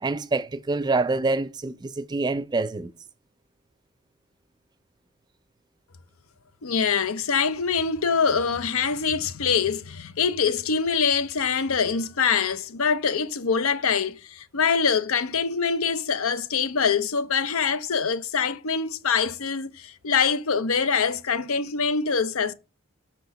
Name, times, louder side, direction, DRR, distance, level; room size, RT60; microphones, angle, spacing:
voice 1, 0.0-2.9, right 3 dB, 20° right, 0.3 m, -26 dB
voice 2, 6.6-22.5, left 6 dB, 80° left, 0.7 m, -24 dB
5.8 x 4.5 x 5.2 m
head